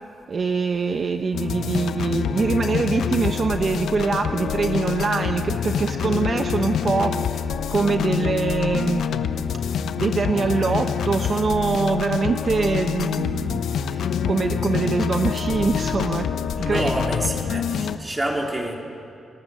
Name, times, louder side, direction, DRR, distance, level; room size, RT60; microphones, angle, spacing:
voice 1, 0.3-9.1 10.0-16.3 16.6-16.8 17.5-17.6, right 4 dB, 40° right, 6 dB, 0.9 m, -24 dB
sound 1, 1.3-18.0, left 7 dB, 80° left, 1.0 m, -26 dB
voice 2, 16.6-18.8, right 1 dB, 15° right, 0 dB, 3.4 m, -28 dB
29.5 x 20.0 x 7.7 m, 2.7 s
wide cardioid pair, 145°, 0 cm